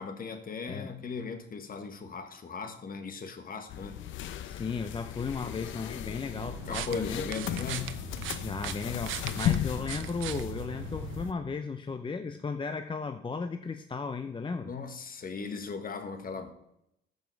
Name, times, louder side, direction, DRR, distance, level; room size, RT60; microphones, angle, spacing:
voice 1, 0.0-4.0 6.7-7.9 14.6-16.5, left 5 dB, 45° left, 7 dB, 1.5 m, -38 dB
sound 1, 3.7-11.3, left 11 dB, 75° left, 0.7 m, -36 dB
voice 2, 4.4-7.2 8.4-14.7, left 4 dB, 25° left, 8 dB, 0.6 m, -35 dB
sound 2, 6.4-11.3, right 12 dB, 85° right, 0.6 m, -40 dB
14.5 x 5.5 x 4.5 m, 0.79 s
cardioid pair, 90°, 20 cm